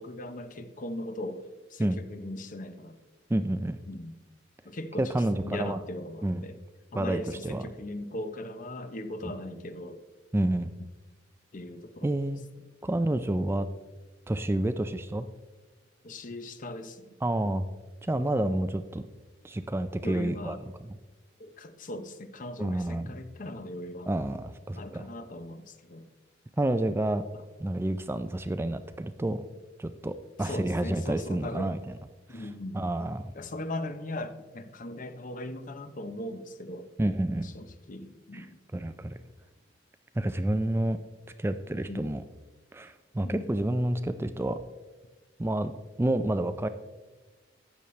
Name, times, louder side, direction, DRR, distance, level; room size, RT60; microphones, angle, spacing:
voice 1, 0.0-1.4 1.7-3.0 3.9-4.1 4.6-5.1 5.4-6.5 6.9-10.0 11.5-12.1 14.5-14.6 16.0-17.1 20.0-20.6 21.4-24.1 24.8-26.1 27.3-27.4 30.4-31.7 32.3-32.8 33.3-36.9 37.4-38.6 41.9-42.1 43.2-43.5, left 1 dB, 45° left, 10 dB, 0.7 m, -39 dB
voice 2, 3.3-3.8 5.0-5.8 6.2-6.4 6.9-7.6 9.2-9.3 10.3-10.7 12.0-12.4 12.8-13.7 14.3-15.3 17.2-17.7 18.0-19.0 19.4-20.9 22.6-23.2 24.1-25.1 26.6-27.2 27.6-29.5 29.8-31.8 32.3-32.5 32.7-33.3 37.0-37.5 38.3-38.5 38.7-39.2 40.2-41.0 41.4-42.2 42.7-44.6 45.4-45.7 46.0-46.7, right 1 dB, 15° right, 10 dB, 0.3 m, -29 dB
12.5 x 8.5 x 3.2 m, 1.2 s
head